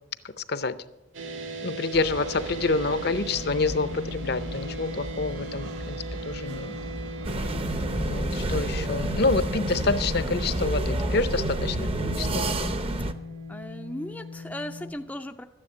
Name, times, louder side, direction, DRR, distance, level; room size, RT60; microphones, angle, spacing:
sound 1, 1.1-14.9, equal, 75° right, 2.1 m, -38 dB
voice 1, 1.6-6.0 6.3-6.7 8.0-12.7, left 3 dB, 55° left, 13 dB, 0.6 m, -27 dB
sound 2, 1.9-10.5, right 1 dB, 55° right, 1.2 m, -39 dB
sound 3, 7.2-13.1, right 1 dB, 30° right, 0.7 m, -28 dB
voice 2, 13.5-15.4, left 1 dB, 5° left, 5 dB, 0.4 m, -37 dB
12.5 x 10.0 x 7.7 m, 0.97 s
head